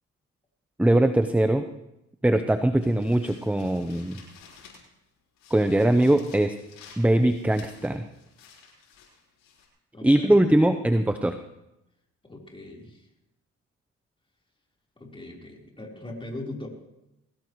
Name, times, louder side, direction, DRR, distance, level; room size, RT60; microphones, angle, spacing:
voice 1, 0.8-1.7 2.2-4.2 5.5-6.6 7.0-8.0 10.0-11.4, right 1 dB, 5° right, 8 dB, 0.8 m, -21 dB
sound 1, 2.8-5.0 5.4-9.7, left 5 dB, 85° left, 5.4 m, -52 dB
voice 2, 9.9-10.3 12.2-13.0 15.0-16.7, left 2 dB, 15° left, -1 dB, 4.1 m, -40 dB
21.5 x 17.5 x 3.2 m, 0.90 s
cardioid pair, 90°, 30 cm